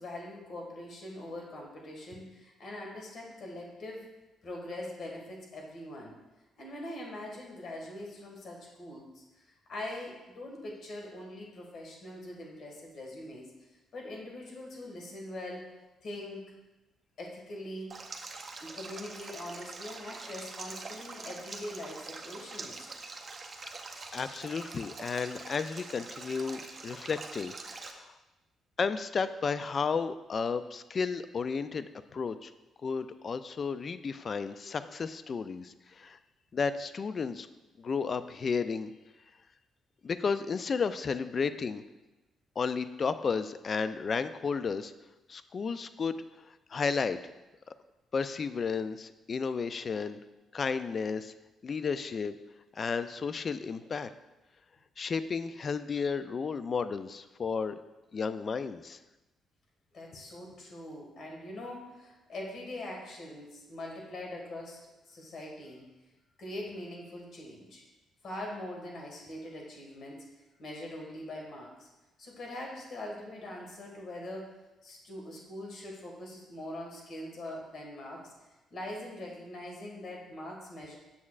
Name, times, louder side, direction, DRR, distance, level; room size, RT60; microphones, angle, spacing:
voice 1, 0.0-4.1 4.4-6.2 6.6-9.2 9.7-13.5 13.9-15.7 16.0-16.5 17.2-17.9 18.6-22.9 34.6-34.7 59.9-65.9 66.4-67.8 68.2-70.2 70.6-71.9 72.2-78.3 78.7-81.0, left 1 dB, 60° left, 0 dB, 1.7 m, -42 dB
Stream, 17.9-27.9, right 3 dB, 40° right, 0.6 m, -44 dB
voice 2, 24.1-28.1 28.8-32.5 32.8-36.2 36.5-37.5 37.8-38.9 40.0-41.8 42.6-44.9 45.3-46.2 46.7-47.2 48.1-50.2 50.5-51.3 51.6-52.4 52.8-54.1 55.0-57.8 58.1-59.0, left 5 dB, 45° left, 12 dB, 0.3 m, -33 dB
7.0 x 6.4 x 2.4 m, 1.0 s
cardioid pair, 90°, 0 cm